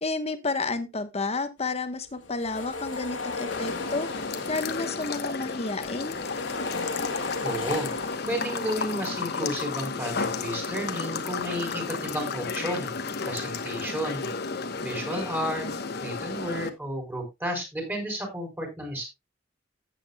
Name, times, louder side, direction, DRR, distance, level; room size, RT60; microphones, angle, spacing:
voice 1, 0.0-4.1 4.5-6.1, left 3 dB, 35° left, 1.1 m, -31 dB
sound 1, 2.1-5.3 5.6-8.3, left 3 dB, 85° left, 2.1 m, -35 dB
sound 2, 3.5-16.7, left 4 dB, 60° left, 1.0 m, -33 dB
voice 2, 7.4-7.9 8.3-13.0 13.2-14.6 14.8-15.7 16.0-19.1, equal, 10° right, 4.1 m, -32 dB
14.0 x 8.4 x 2.3 m
head